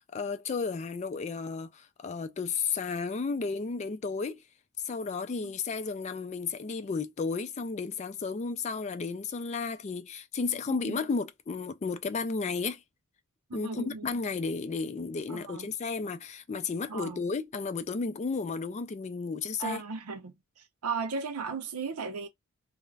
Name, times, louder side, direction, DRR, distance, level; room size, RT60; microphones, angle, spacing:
voice 1, 0.0-4.4 4.8-12.8 13.5-19.8, left 4 dB, 30° left, 0.3 m, -33 dB
voice 2, 10.7-11.0 13.5-14.2 15.3-15.7 16.9-17.2 19.6-22.3, right 4 dB, 85° right, 0.7 m, -36 dB
2.4 x 2.1 x 3.1 m
head